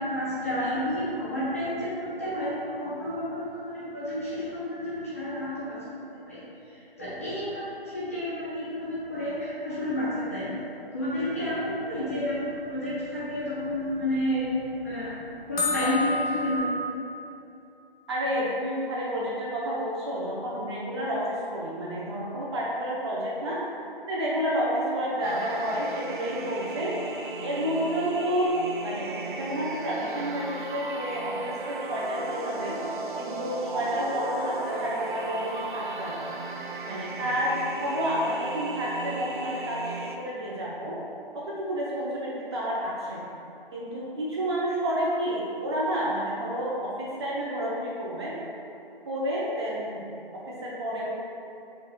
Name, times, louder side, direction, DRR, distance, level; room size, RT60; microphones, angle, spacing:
voice 1, 0.0-5.8 6.3-6.4 6.7-10.6 10.9-14.5 14.8-16.7, left 1 dB, 15° left, -11 dB, 0.5 m, -30 dB
sound 1, 11.3-13.0 13.8-13.9 14.4-14.5 14.7-14.8 15.6-16.6, left 3 dB, 75° left, 1.1 m, -32 dB
voice 2, 18.1-21.2 21.5-23.6 24.0-26.9 27.4-32.8 33.2-36.3 36.9-41.0 41.3-43.2 43.7-46.9 47.2-48.4 49.1-50.0 50.5-51.1, equal, 25° right, -6 dB, 0.8 m, -30 dB
sound 2, 25.2-40.2, right 3 dB, 55° right, 0.5 m, -36 dB
4.6 x 2.5 x 4.5 m, 2.9 s
figure-of-eight pair, 150°, 30 cm